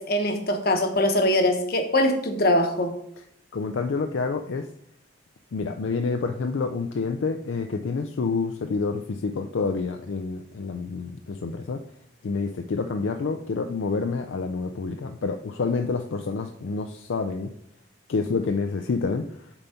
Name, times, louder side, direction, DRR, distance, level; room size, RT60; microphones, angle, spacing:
voice 1, 0.0-2.9, left 1 dB, 50° left, 5 dB, 0.9 m, -22 dB
voice 2, 3.5-4.7 5.5-11.8 12.2-17.5 18.1-19.3, left 4 dB, 70° left, 6 dB, 0.4 m, -28 dB
7.0 x 4.0 x 5.6 m, 0.74 s
head